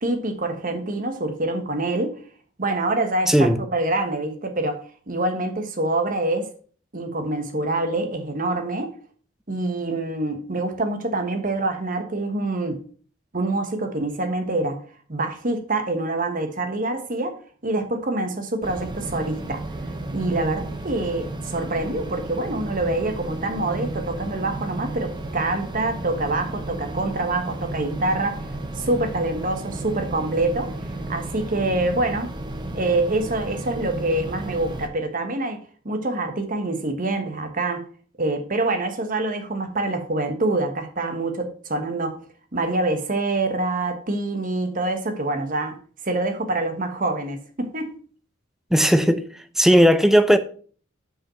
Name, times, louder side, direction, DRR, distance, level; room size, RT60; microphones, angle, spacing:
voice 1, 0.0-2.2 2.6-4.8 5.1-6.5 6.9-8.9 9.5-12.8 13.3-14.8 15.1-17.4 17.6-19.6 20.1-28.3 28.8-30.7 31.1-32.3 32.7-35.6 35.8-37.8 38.2-42.2 42.5-45.8 46.0-47.9, right 2 dB, 45° right, 1.2 m, -25 dB
voice 2, 3.3-3.6 48.7-49.2 49.6-50.4, equal, ahead, 0.5 m, -16 dB
sound 1, 18.6-34.9, right 2 dB, 25° right, 0.8 m, -33 dB
6.1 x 5.1 x 5.6 m
head